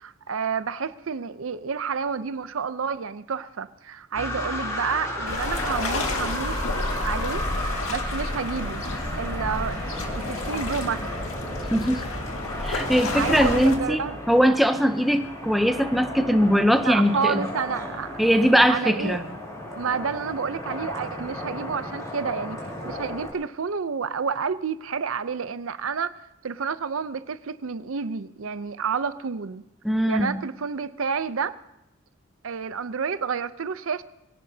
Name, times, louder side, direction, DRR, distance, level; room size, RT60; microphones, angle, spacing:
voice 1, 0.0-6.6 7.0-8.8 9.2-9.8 10.1-11.1 13.1-14.2 16.8-18.1 18.7-19.2 19.7-29.6 30.1-31.6 32.4-34.0, right 6 dB, 80° right, 13 dB, 0.6 m, -30 dB
sound 1, 4.1-23.3, left 1 dB, 15° left, 3.3 m, -34 dB
sound 2, 5.2-13.8, left 2 dB, 85° left, 2.0 m, -31 dB
voice 2, 11.7-12.0 12.6-17.4 18.2-19.2 29.8-30.4, equal, ahead, 7 dB, 0.6 m, -21 dB
23.0 x 17.5 x 2.8 m, 0.85 s
head